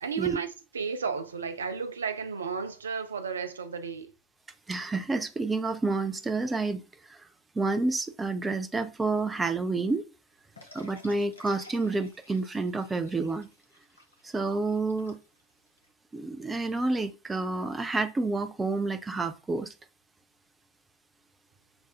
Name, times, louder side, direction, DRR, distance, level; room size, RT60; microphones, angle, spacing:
voice 1, 0.0-4.1, right 6 dB, 70° right, 0.5 m, -33 dB
voice 2, 4.7-6.8 7.1-7.2 7.6-10.1 10.7-13.5 14.2-15.2 16.1-19.7, right 3 dB, 10° right, 0.4 m, -29 dB
sound 1, 10.6-15.9, left 2 dB, 80° left, 1.0 m, -54 dB
6.8 x 2.4 x 2.3 m
figure-of-eight pair, 90°, 0 cm